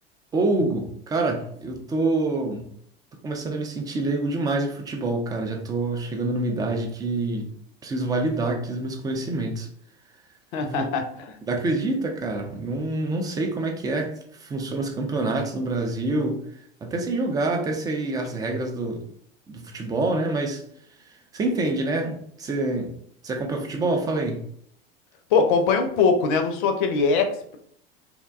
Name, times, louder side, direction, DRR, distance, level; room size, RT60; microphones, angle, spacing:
voice 1, 0.3-2.7 3.2-7.5 7.8-9.7 10.6-10.9 11.5-14.1 14.4-16.4 16.8-19.1 19.5-20.6 21.3-22.9 23.2-24.4, right 2 dB, 15° right, 2 dB, 0.3 m, -26 dB
voice 2, 10.5-11.3 25.3-27.6, left 5 dB, 55° left, 6 dB, 0.5 m, -22 dB
2.7 x 2.1 x 2.3 m, 0.65 s
figure-of-eight pair, 75°, 31 cm